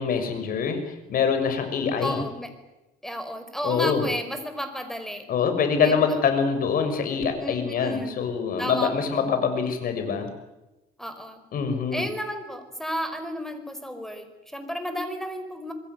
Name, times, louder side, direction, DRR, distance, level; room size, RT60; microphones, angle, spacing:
voice 1, 0.0-2.2 3.6-4.1 5.3-10.3 11.5-12.1, left 6 dB, 60° left, 8 dB, 6.3 m, -25 dB
voice 2, 2.0-2.5 3.0-5.2 5.8-6.0 7.4-8.2 8.6-9.2 11.0-11.4 11.9-15.7, equal, ahead, 9 dB, 5.1 m, -32 dB
26.5 x 21.5 x 9.6 m, 1.0 s
cardioid pair, 110°, 17 cm